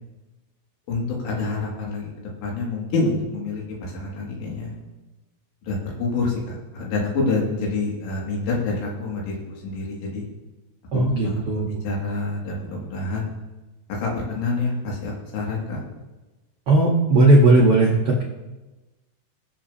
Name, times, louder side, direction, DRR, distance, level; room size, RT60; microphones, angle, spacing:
voice 1, 0.9-2.1 2.4-4.8 5.7-10.2 10.9-13.3 13.9-15.8, left 3 dB, 85° left, -3 dB, 4.5 m, -27 dB
voice 2, 10.9-11.7 16.7-18.2, right 2 dB, 80° right, -2 dB, 1.2 m, -16 dB
22.0 x 7.6 x 2.9 m, 1.1 s
omnidirectional pair, 4.9 m